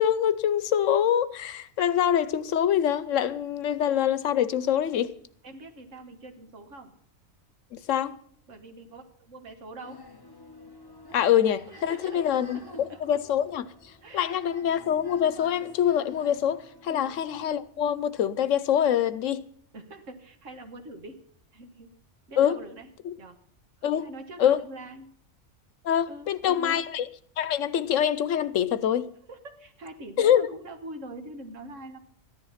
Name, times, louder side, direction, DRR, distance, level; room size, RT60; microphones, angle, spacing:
voice 1, 0.0-5.1 7.7-8.1 11.1-12.6 13.0-13.7 14.1-19.4 22.4-22.6 23.8-24.1 24.4-24.6 25.8-27.0 27.4-29.1 30.2-30.4, left 9 dB, 85° left, 1.1 m, -24 dB
voice 2, 5.4-6.9 8.5-10.0 11.7-13.0 14.0-14.4 16.9-17.2 19.7-21.2 21.5-21.9 22.3-22.9 23.2-23.4 23.8-25.1 26.1-26.8 29.3-32.0, right 2 dB, 85° right, 1.8 m, -43 dB
sound 1, 9.8-17.6, left 2 dB, 20° left, 0.9 m, -49 dB
14.5 x 10.5 x 5.7 m
omnidirectional pair, 1.3 m